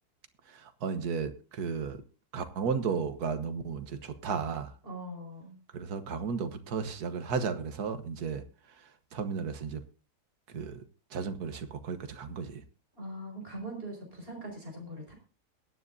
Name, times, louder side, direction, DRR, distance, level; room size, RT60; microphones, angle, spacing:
voice 1, 0.5-2.0 2.3-4.7 5.7-8.4 9.1-9.8 10.5-10.8 11.1-12.6, right 6 dB, 75° right, 1.7 m, -34 dB
voice 2, 4.8-5.6 13.0-15.1, right 1 dB, 35° right, 5.4 m, -41 dB
22.0 x 9.9 x 2.7 m
omnidirectional pair, 1.7 m